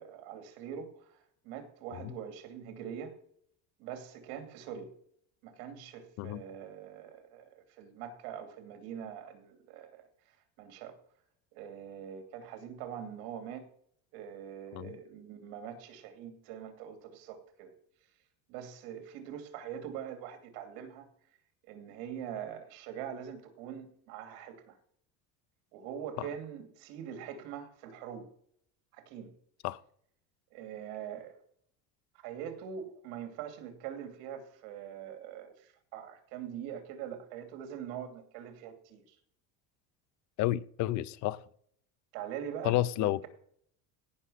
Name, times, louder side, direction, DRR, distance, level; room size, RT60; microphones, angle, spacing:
voice 1, 0.0-3.1 3.8-4.9 5.4-10.1 10.6-11.0 11.5-13.6 14.1-17.7 18.5-21.1 21.7-24.8 25.7-28.2 28.9-29.3 30.5-31.4 32.2-39.1 42.1-43.3, right 9 dB, 75° right, 2.7 m, -43 dB
voice 2, 40.4-41.4 42.6-43.3, left 15 dB, 50° left, 0.7 m, -31 dB
17.0 x 6.4 x 5.7 m
cardioid pair, 150°, 37 cm